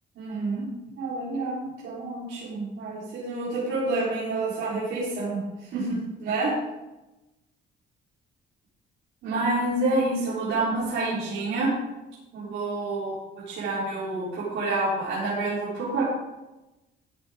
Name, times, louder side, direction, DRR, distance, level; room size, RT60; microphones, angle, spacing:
voice 1, 0.2-0.7 0.9-6.5 9.2-11.7 12.3-16.0, right 2 dB, 80° right, -9 dB, 4.3 m, -28 dB
14.0 x 8.9 x 3.9 m, 1.0 s
cardioid pair, 90°, 20 cm